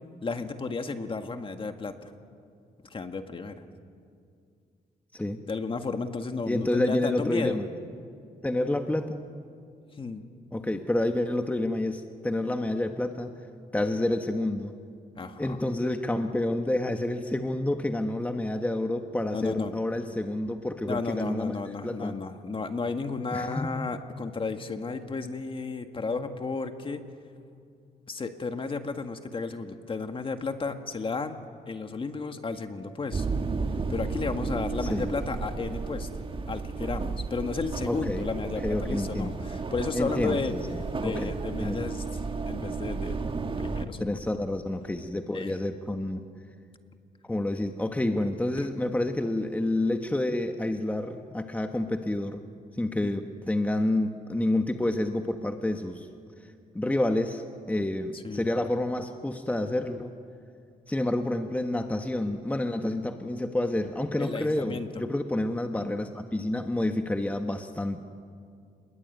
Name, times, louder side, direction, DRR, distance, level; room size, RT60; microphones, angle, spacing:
voice 1, 0.2-2.1 2.9-3.6 5.5-7.6 10.0-10.3 15.2-15.6 19.3-19.7 20.8-27.0 28.1-31.4 31.7-33.3 33.9-36.1 36.5-40.5 40.9-42.2 42.5-43.2 43.6-44.2 45.3-45.6 48.6-48.7 53.0-53.1 58.1-58.4 64.2-65.0, left 4 dB, 35° left, 6 dB, 1.9 m, -33 dB
voice 2, 6.5-7.7 8.4-9.2 10.5-13.3 13.7-14.8 15.4-21.5 21.8-22.2 23.3-23.7 34.8-35.1 37.9-38.3 38.6-39.4 39.9-40.6 41.0-41.8 44.0-46.2 47.2-52.4 52.7-56.1 56.7-60.1 60.9-68.0, left 1 dB, 10° left, 6 dB, 1.3 m, -29 dB
sound 1, 33.1-43.9, right 4 dB, 35° right, 1.7 m, -33 dB
28.5 x 21.5 x 9.3 m, 2.3 s
cardioid pair, 100°, 16 cm